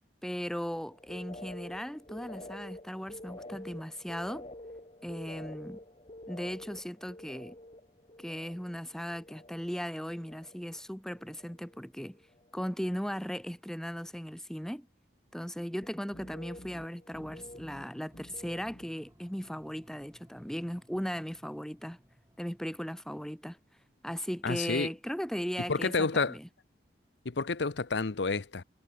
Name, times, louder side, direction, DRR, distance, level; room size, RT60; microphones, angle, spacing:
voice 1, 0.2-4.5 5.0-5.8 6.3-7.6 8.2-12.2 12.5-14.9 15.3-22.0 22.4-23.6 24.0-26.5, equal, 5° left, 1.6 m, -37 dB
sound 1, 0.9-9.8 10.1-10.8 11.1-11.8 12.1-12.5 15.8-19.0, left 1 dB, 35° left, 3.1 m, -49 dB
sound 2, 17.2-22.6, equal, 15° right, 3.1 m, -61 dB
voice 2, 24.4-24.9 25.7-26.4 27.2-28.6, left 4 dB, 85° left, 0.9 m, -29 dB
head